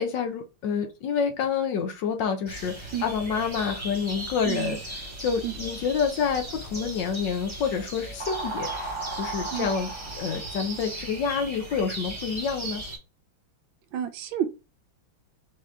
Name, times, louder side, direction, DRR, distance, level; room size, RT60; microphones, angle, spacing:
voice 1, 0.0-4.8 5.2-12.8, left 6 dB, 65° left, 1.4 m, -28 dB
sound 1, 2.5-13.0, right 2 dB, 15° right, 1.3 m, -36 dB
voice 2, 4.4-4.8 5.4-5.5 9.5-9.7 13.9-14.5, right 11 dB, 75° right, 1.3 m, -30 dB
5.0 x 2.8 x 3.4 m
omnidirectional pair, 2.3 m